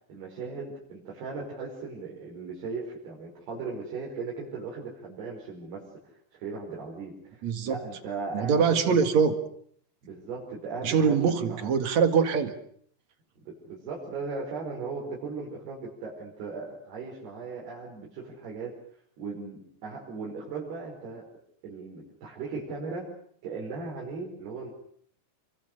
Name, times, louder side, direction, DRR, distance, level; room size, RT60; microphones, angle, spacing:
voice 1, 0.1-5.9 6.3-9.0 10.0-11.8 13.5-18.8 19.2-21.3 21.6-23.1 23.4-24.7, right 4 dB, 65° right, -3 dB, 7.1 m, -37 dB
voice 2, 7.4-7.8 8.3-9.3 10.8-12.5, right 6 dB, 50° right, 8 dB, 2.6 m, -23 dB
28.5 x 23.5 x 6.6 m, 0.63 s
omnidirectional pair, 4.9 m